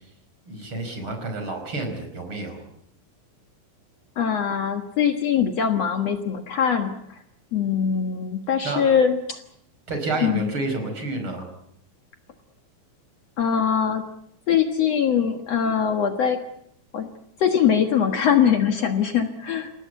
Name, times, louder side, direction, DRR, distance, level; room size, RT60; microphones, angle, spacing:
voice 1, 0.5-2.6 8.6-8.9 9.9-11.5, right 2 dB, 40° right, 5 dB, 5.8 m, -29 dB
voice 2, 4.2-7.2 7.5-9.4 10.2-10.5 13.4-14.0 14.5-16.4 16.9-17.1 17.4-19.7, left 8 dB, 55° left, 6 dB, 2.4 m, -22 dB
28.5 x 18.0 x 8.2 m, 0.72 s
omnidirectional pair, 3.7 m